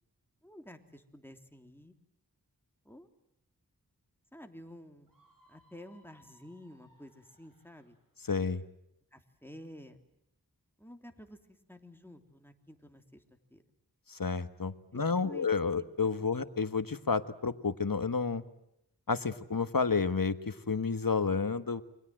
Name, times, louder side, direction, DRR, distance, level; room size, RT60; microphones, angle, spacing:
voice 1, 0.4-2.0 2.8-3.1 4.3-8.0 9.1-10.0 10.8-13.6 14.9-15.5, left 1 dB, 5° left, 5 dB, 3.3 m, -51 dB
Screaming, 5.1-8.0, left 1 dB, 60° right, 7.7 m, -66 dB
voice 2, 8.3-8.6 14.1-18.4 19.1-21.8, left 5 dB, 60° left, 11 dB, 1.6 m, -30 dB
29.5 x 24.0 x 7.8 m, 0.81 s
wide cardioid pair, 50°, 38 cm